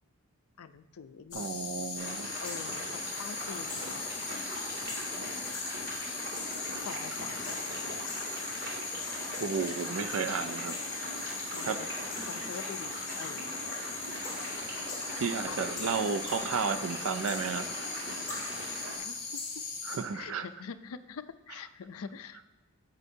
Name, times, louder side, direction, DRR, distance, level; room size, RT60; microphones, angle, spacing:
voice 1, 0.6-1.5 2.4-4.4 6.8-7.3 11.5-11.9 12.3-13.5 15.5-15.6 18.2-18.6 18.9-19.6 20.1-22.4, left 6 dB, 75° left, 11 dB, 0.4 m, -45 dB
sound 1, 1.3-20.0, left 4 dB, 35° left, 2.7 m, -39 dB
voice 2, 1.3-2.3 9.4-10.8 11.6-11.8 12.1-12.3 15.1-17.8 18.3-18.5 19.8-20.5, right 5 dB, 65° right, 11 dB, 0.4 m, -33 dB
sound 2, 1.9-19.0, equal, 45° right, 2.3 m, -41 dB
11.0 x 8.0 x 2.7 m, 1.1 s
head